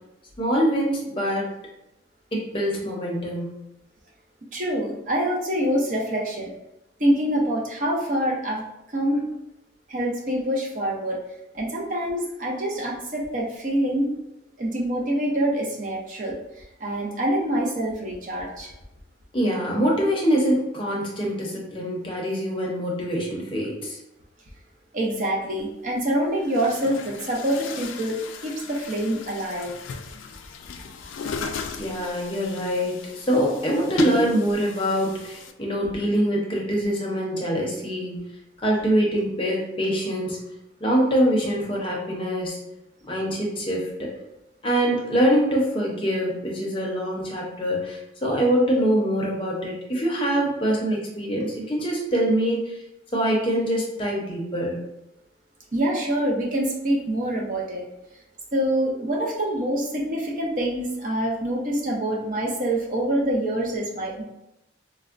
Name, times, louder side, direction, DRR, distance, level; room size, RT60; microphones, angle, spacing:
voice 1, 0.4-1.5 2.3-3.5 19.3-24.0 31.8-38.2 38.6-40.4 40.8-42.6 43.0-44.1 44.6-52.7 53.1-54.8, equal, 25° left, -2 dB, 0.6 m, -24 dB
voice 2, 4.5-6.5 7.0-8.6 8.9-9.3 9.9-11.2 11.5-14.1 14.6-16.4 16.8-18.7 24.9-29.7 55.7-57.9 58.5-64.2, right 1 dB, 40° right, -2 dB, 0.6 m, -25 dB
Chatter / Gurgling / Tap, 25.6-25.7 26.4-35.5, left 5 dB, 80° left, 0.3 m, -37 dB
4.2 x 2.1 x 2.5 m, 0.87 s
head